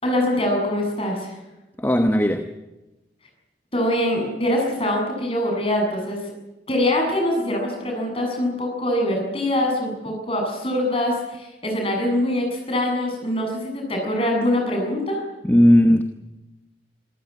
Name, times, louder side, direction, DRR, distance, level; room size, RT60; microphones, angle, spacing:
voice 1, 0.0-1.3 3.7-6.2 6.7-15.2, left 1 dB, 30° left, 7.6 m, -23 dB
voice 2, 1.8-2.5 15.4-16.0, equal, 10° left, 1.1 m, -16 dB
26.0 x 14.5 x 9.7 m
head